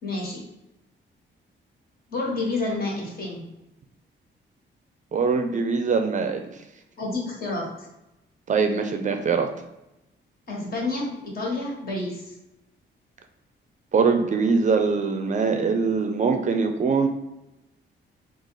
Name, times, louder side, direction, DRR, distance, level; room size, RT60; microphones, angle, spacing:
voice 1, 0.0-0.5 2.1-3.5 7.0-7.9 10.5-12.3, left 2 dB, 50° left, -2 dB, 1.3 m, -29 dB
voice 2, 5.1-6.4 8.5-9.5 13.9-17.1, right 5 dB, 40° right, 6 dB, 0.4 m, -22 dB
3.9 x 2.4 x 4.6 m, 0.93 s
wide cardioid pair, 150°, 20 cm